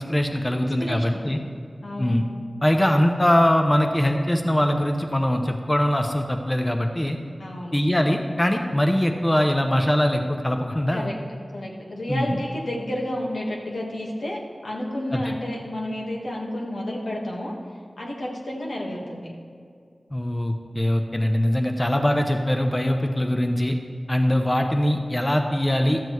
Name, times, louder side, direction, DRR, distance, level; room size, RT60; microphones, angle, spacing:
voice 1, 0.0-1.4 2.0-2.3 2.6-7.2 7.7-11.1 12.1-12.4 15.1-15.3 20.1-23.8 24.1-26.1, left 1 dB, 20° left, 4 dB, 0.7 m, -22 dB
voice 2, 0.5-1.2 1.8-2.1 7.4-7.7 10.9-11.1 11.5-17.5 18.0-19.3, left 1 dB, 85° left, -3 dB, 1.6 m, -31 dB
13.0 x 7.4 x 3.1 m, 2.3 s
wide cardioid pair, 50°, 0 cm